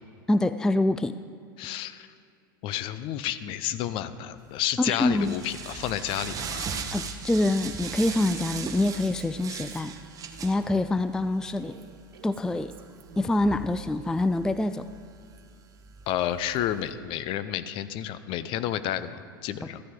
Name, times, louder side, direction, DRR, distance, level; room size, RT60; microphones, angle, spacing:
voice 1, 0.3-1.2 4.8-5.3 6.9-10.0 10.4-11.8 12.2-12.7 13.2-14.9, left 2 dB, 5° left, 12 dB, 0.3 m, -25 dB
voice 2, 1.6-2.1 2.6-6.7 16.1-19.8, left 11 dB, 50° left, 13 dB, 0.6 m, -31 dB
sound 1, 4.5-16.9, right 5 dB, 30° right, 1.1 m, -40 dB
Female speech woman speaking, 4.8-6.9 7.8-10.7 11.5-13.4, right 5 dB, 80° right, 1.3 m, -51 dB
14.0 x 10.0 x 3.8 m, 2.4 s
hypercardioid pair, 90°, 12 cm